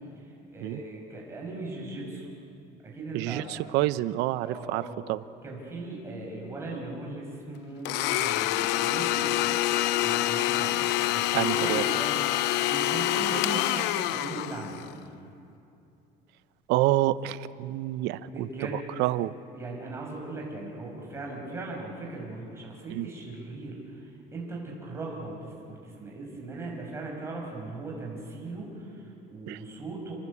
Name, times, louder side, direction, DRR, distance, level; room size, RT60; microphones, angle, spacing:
voice 1, 0.2-2.3 2.8-3.5 4.4-5.0 5.4-9.6 10.0-14.8 18.1-18.9 19.5-30.1, right 2 dB, 15° right, -1 dB, 6.0 m, -38 dB
voice 2, 3.1-5.2 11.3-11.9 16.7-19.3 22.9-23.1 29.5-29.6, right 16 dB, 80° right, 15 dB, 0.8 m, -28 dB
Domestic sounds home sounds, 7.9-14.9, left 14 dB, 80° left, 0.8 m, -26 dB
28.5 x 21.0 x 8.5 m, 2.6 s
cardioid pair, 165°, 18 cm